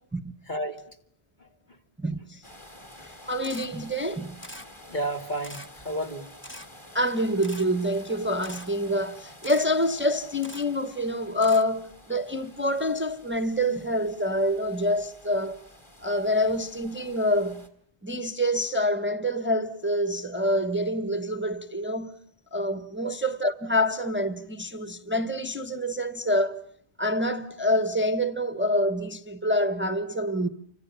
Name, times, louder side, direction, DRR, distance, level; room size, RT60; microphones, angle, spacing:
voice 1, 0.5-1.0 1.4-1.8 4.9-6.3 23.0-23.1, right 1 dB, 45° left, 2.4 m, -32 dB
voice 2, 2.0-2.4 3.0-4.3 6.9-15.6 16.0-17.6 18.0-22.2 22.5-26.5 27.0-30.5, equal, 10° right, 1.1 m, -26 dB
sound 1, 2.4-17.7, left 1 dB, 25° left, 3.5 m, -50 dB
Camera, 3.4-3.7 4.4-4.7 5.4-5.7 6.4-6.7 7.4-7.6 8.4-8.7 9.4-9.7 10.4-10.6 11.4-11.6, left 1 dB, 10° left, 1.6 m, -42 dB
29.5 x 25.0 x 7.0 m
omnidirectional pair, 1.1 m